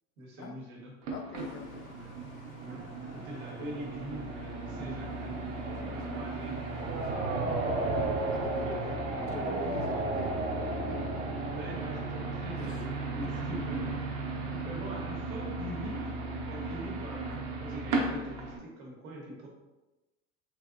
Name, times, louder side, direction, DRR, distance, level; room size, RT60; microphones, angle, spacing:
voice 1, 0.2-1.0 1.9-2.1 2.6-5.4 5.9-6.6 8.6-9.4 11.5-14.0 14.4-16.2 16.4-19.5, equal, 80° right, -2 dB, 1.1 m, -43 dB
sound 1, 1.0-18.6, right 3 dB, 50° right, 0.8 m, -37 dB
voice 2, 1.1-1.9 4.8-5.0 5.6-6.0 6.2-6.4 6.8-7.5 8.3-11.3 12.6-12.8 13.2-13.5 14.3-14.7, left 4 dB, 35° left, 4 dB, 0.5 m, -46 dB
sound 2, 1.3-7.1, equal, 75° left, 0.7 m, -53 dB
sound 3, 2.6-13.5, right 2 dB, 25° right, 0.4 m, -35 dB
3.4 x 2.7 x 2.4 m, 1.1 s
hypercardioid pair, 80°, 41 cm